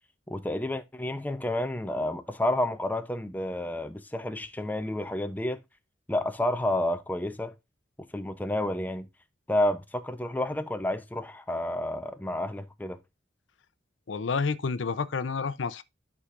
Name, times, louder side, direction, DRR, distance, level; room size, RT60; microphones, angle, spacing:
voice 1, 0.3-5.6 6.1-7.5 8.1-9.1 9.5-13.0, left 1 dB, 10° left, 0.6 m, -30 dB
voice 2, 14.1-15.8, left 5 dB, 85° left, 0.6 m, -29 dB
11.5 x 4.9 x 2.5 m
head